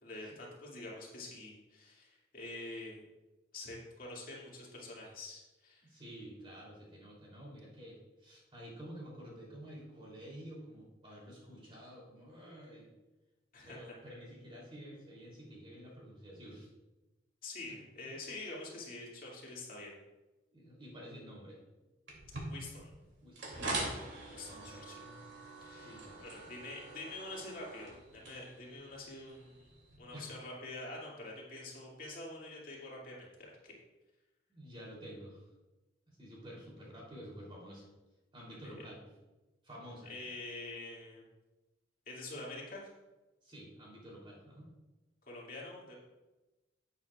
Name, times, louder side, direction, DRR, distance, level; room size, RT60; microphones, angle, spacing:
voice 1, 0.0-3.0 3.5-5.8 13.5-13.8 17.4-19.9 22.5-22.9 24.3-25.0 25.6-29.7 30.0-33.3 33.6-33.8 40.0-41.3 42.1-42.9 45.3-45.9, left 2 dB, 45° left, -4 dB, 2.4 m, -46 dB
voice 2, 5.8-12.9 13.6-16.7 18.0-18.2 20.5-21.6 23.2-24.0 24.4-25.3 25.7-26.5 30.1-30.3 34.5-35.5 36.1-37.9 38.3-39.0 39.6-40.1 43.4-44.7, equal, 30° right, -4 dB, 3.2 m, -50 dB
sound 1, 22.1-30.0, right 2 dB, 75° right, 2.7 m, -44 dB
12.0 x 8.8 x 2.4 m, 1.1 s
head